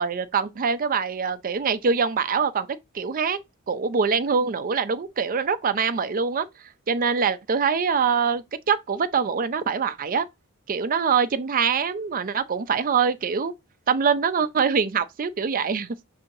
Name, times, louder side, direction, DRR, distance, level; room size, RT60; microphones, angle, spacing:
voice 1, 0.0-2.7 2.9-3.4 3.7-6.5 6.9-10.3 10.7-13.5 13.9-15.9, right 6 dB, 40° right, 0.5 m, -24 dB
6.7 x 2.8 x 2.6 m
head